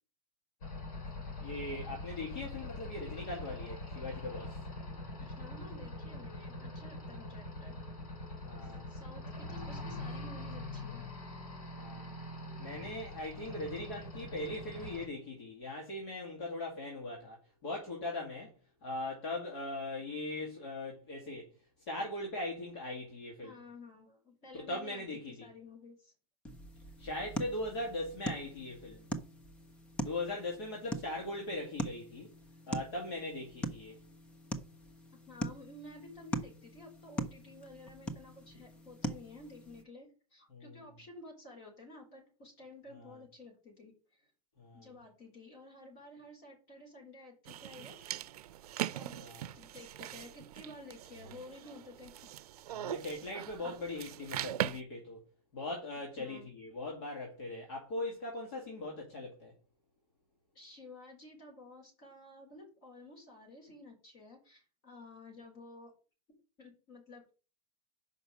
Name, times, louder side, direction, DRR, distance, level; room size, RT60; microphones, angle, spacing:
sound 1, 0.6-15.1, left 2 dB, 70° left, 3.5 m, -43 dB
voice 1, 1.4-4.6 8.4-8.9 11.8-12.1 12.6-18.5 18.8-21.5 21.9-23.5 24.5-25.5 27.0-29.0 30.0-32.3 32.7-34.0 40.5-40.7 42.9-43.1 44.6-44.9 49.1-49.5 52.7-55.2 55.5-59.5, left 2 dB, 45° left, 2.3 m, -40 dB
voice 2, 5.2-7.8 8.6-11.1 23.4-26.1 35.3-44.2 44.7-48.3 48.9-49.2 49.5-52.3 53.6-53.8 56.2-56.5 60.5-65.9 66.6-67.2, left 2 dB, 30° left, 4.0 m, -52 dB
sound 2, 26.4-39.8, left 1 dB, 5° left, 0.3 m, -42 dB
sound 3, 47.5-54.8, right 13 dB, 85° right, 0.5 m, -41 dB
5.3 x 5.2 x 6.3 m
supercardioid pair, 175°, 19 cm